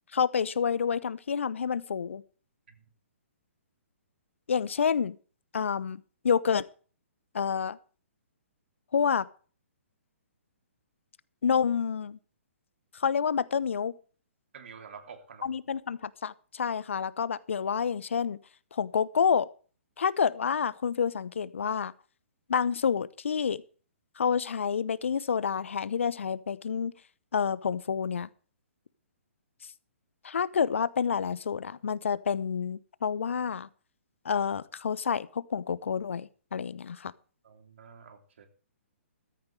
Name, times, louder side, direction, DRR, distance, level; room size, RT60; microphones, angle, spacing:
voice 1, 0.1-2.2 4.5-5.2 5.5-6.6 7.3-7.8 8.9-9.3 11.4-12.2 12.9-14.0 15.4-18.4 18.7-19.5 20.0-21.9 22.5-23.6 24.2-26.9 27.3-28.3 30.2-33.7 34.2-37.1, left 7 dB, 65° left, 0.9 m, -28 dB
voice 2, 14.5-15.6 37.4-38.5, right 6 dB, 60° right, 3.1 m, -49 dB
14.5 x 14.0 x 3.3 m
figure-of-eight pair, 130°, 7 cm